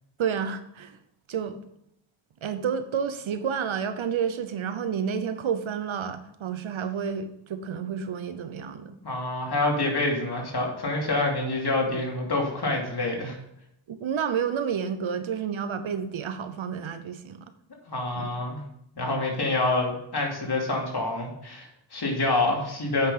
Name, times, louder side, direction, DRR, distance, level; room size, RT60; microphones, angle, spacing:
voice 1, 0.2-1.0 1.3-1.6 2.4-9.0 13.9-17.5 18.2-18.3, right 7 dB, 85° right, 11 dB, 0.8 m, -30 dB
voice 2, 9.0-13.4 17.9-18.6 19.0-23.1, left 2 dB, 55° left, -1 dB, 2.6 m, -27 dB
8.3 x 5.9 x 5.0 m, 0.77 s
cardioid pair, 60°, 46 cm